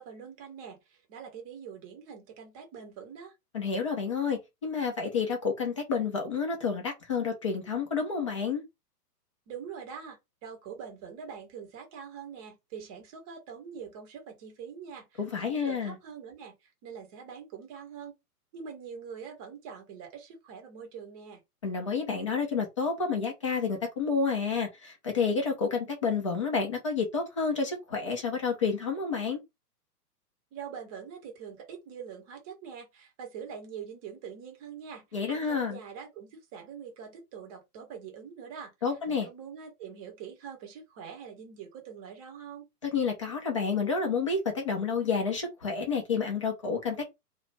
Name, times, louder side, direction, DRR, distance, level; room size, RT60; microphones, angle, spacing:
voice 1, 0.0-3.3 9.5-18.1 18.5-21.4 30.5-38.7 39.1-42.7, right 7 dB, 25° right, 0.7 m, -44 dB
voice 2, 3.5-8.6 15.2-16.0 21.6-29.4 35.1-35.8 38.8-39.3 42.8-47.1, left 5 dB, 20° left, 0.4 m, -29 dB
2.3 x 2.0 x 3.2 m
figure-of-eight pair, 115°, 48 cm